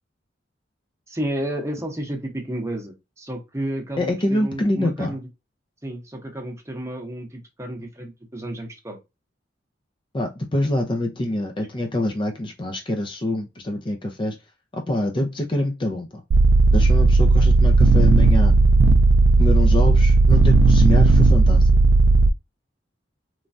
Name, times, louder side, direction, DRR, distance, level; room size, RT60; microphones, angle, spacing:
voice 1, 1.1-5.3 5.8-9.0 17.3-17.5, right 1 dB, 15° right, 0.9 m, -31 dB
voice 2, 4.0-5.2 10.1-14.4 14.7-16.1 16.7-18.5 19.4-21.7, left 1 dB, 30° left, 0.5 m, -25 dB
sound 1, 16.3-22.3, right 3 dB, 85° right, 0.3 m, -15 dB
3.2 x 2.3 x 2.5 m
head